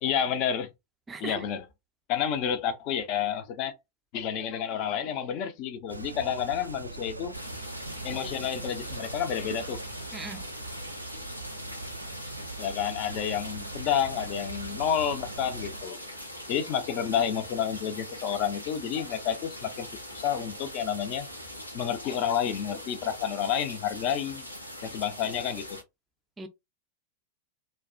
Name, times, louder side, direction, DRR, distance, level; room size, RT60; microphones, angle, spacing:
voice 1, 0.0-0.7 1.2-1.7 2.1-3.7 4.1-7.3 8.0-9.8 12.6-16.0 16.5-19.9 20.1-21.3 21.7-24.5 24.8-25.8, left 8 dB, 40° left, 0.5 m, -30 dB
voice 2, 1.1-1.4 10.1-10.5 26.4-26.5, right 4 dB, 15° right, 0.4 m, -38 dB
sound 1, 5.9-15.8, right 3 dB, 85° right, 0.3 m, -41 dB
sound 2, 7.3-25.8, left 1 dB, 85° left, 0.6 m, -42 dB
2.3 x 2.1 x 2.4 m
figure-of-eight pair, 90°, 0 cm